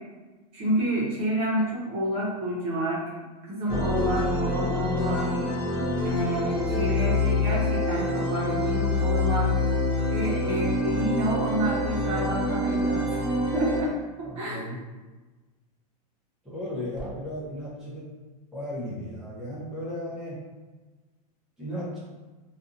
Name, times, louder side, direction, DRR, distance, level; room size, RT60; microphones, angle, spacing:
voice 1, 0.5-3.1 3.4-5.3 6.0-9.5 10.1-13.0 13.5-13.9 14.4-14.6, equal, 30° right, -6 dB, 0.8 m, -29 dB
sound 1, 3.7-13.8, left 2 dB, 30° left, 0.6 m, -26 dB
voice 2, 14.2-14.8 16.4-18.1 18.5-20.4 21.6-22.0, equal, 5° right, -9 dB, 0.7 m, -35 dB
2.5 x 2.4 x 2.5 m, 1.2 s
supercardioid pair, 155°, 20 cm